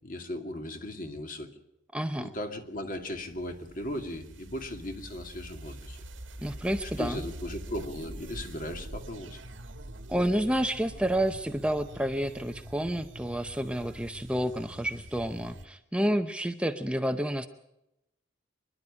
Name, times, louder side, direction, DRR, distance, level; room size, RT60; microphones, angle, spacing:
voice 1, 0.0-1.5 2.2-6.0 6.8-9.4, left 1 dB, 45° left, 5 dB, 2.4 m, -37 dB
voice 2, 1.9-2.3 6.4-7.2 10.1-17.5, right 1 dB, 5° right, 7 dB, 0.7 m, -29 dB
sound 1, 2.8-15.7, right 1 dB, 80° right, 1.6 m, -45 dB
25.5 x 11.5 x 9.9 m, 0.88 s
head